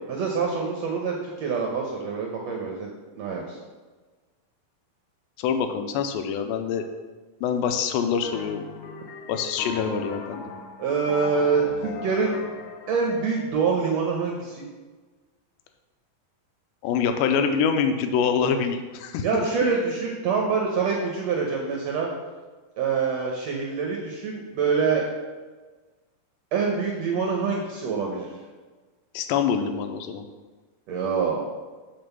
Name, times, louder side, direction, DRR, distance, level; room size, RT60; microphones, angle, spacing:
voice 1, 0.1-3.6 10.8-12.4 12.9-14.7 19.2-22.1 22.8-25.1 26.5-28.3 30.9-31.4, right 5 dB, 75° right, 0 dB, 1.6 m, -25 dB
voice 2, 5.4-6.9 7.4-8.6 9.3-10.4 16.8-19.5 29.1-30.3, left 6 dB, 90° left, 7 dB, 2.4 m, -25 dB
sound 1, 8.2-13.5, left 4 dB, 70° left, 2.0 m, -39 dB
7.7 x 4.3 x 6.7 m, 1.3 s
omnidirectional pair, 4.0 m